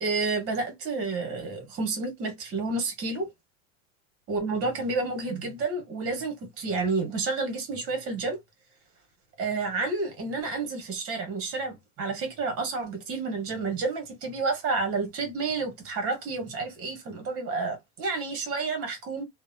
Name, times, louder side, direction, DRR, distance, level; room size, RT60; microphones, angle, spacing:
voice 1, 0.0-3.3 4.3-8.4 9.4-19.2, right 3 dB, 35° right, 1.1 m, -30 dB
2.6 x 2.1 x 2.6 m
supercardioid pair, 120°, 39 cm